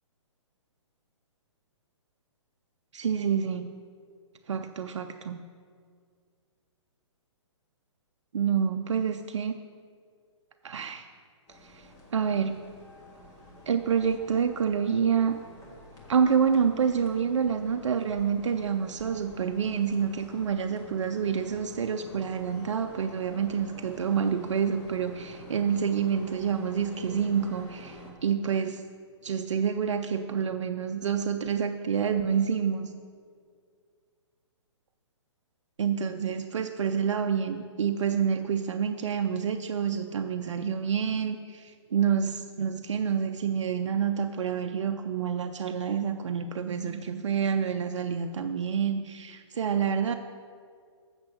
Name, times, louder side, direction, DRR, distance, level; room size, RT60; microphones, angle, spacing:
voice 1, 2.9-3.7 4.5-5.4 8.3-9.5 10.6-11.1 11.6-12.6 13.7-15.4 16.1-28.8 29.2-32.9 35.8-50.1, right 7 dB, 70° right, 6 dB, 0.6 m, -28 dB
sound 1, 11.5-28.1, equal, 25° left, 2.2 m, -48 dB
8.5 x 6.8 x 6.1 m, 2.1 s
hypercardioid pair, 135°, 16 cm